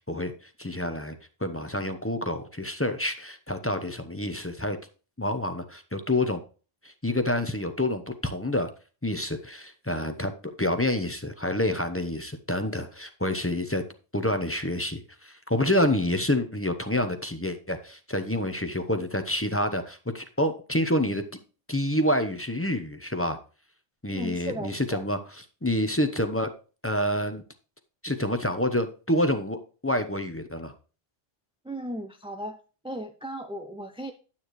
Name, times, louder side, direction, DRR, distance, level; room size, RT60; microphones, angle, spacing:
voice 1, 0.6-1.2 1.4-4.8 5.2-6.4 6.8-8.7 9.0-10.3 10.6-13.8 14.1-21.2 21.7-23.4 24.0-26.5 26.8-27.4 28.0-30.7, left 1 dB, 15° left, 8 dB, 0.8 m, -28 dB
voice 2, 24.1-25.0 31.6-32.6 32.8-34.1, right 1 dB, 5° right, 6 dB, 0.5 m, -36 dB
10.0 x 8.7 x 3.1 m, 0.36 s
omnidirectional pair, 1.1 m